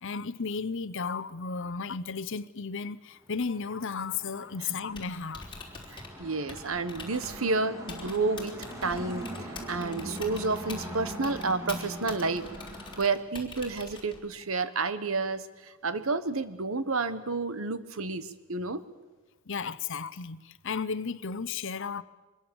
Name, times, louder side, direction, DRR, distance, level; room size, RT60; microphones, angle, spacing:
voice 1, 0.0-5.4 19.5-22.0, left 5 dB, 60° left, 0.8 m, -34 dB
sound 1, 3.4-13.0, equal, 15° right, 3.6 m, -42 dB
Typing, 4.8-14.4, left 4 dB, 25° left, 3.4 m, -46 dB
voice 2, 5.9-9.3 9.7-12.4 13.0-18.8, right 3 dB, 70° right, 1.3 m, -30 dB
24.5 x 21.0 x 7.1 m
head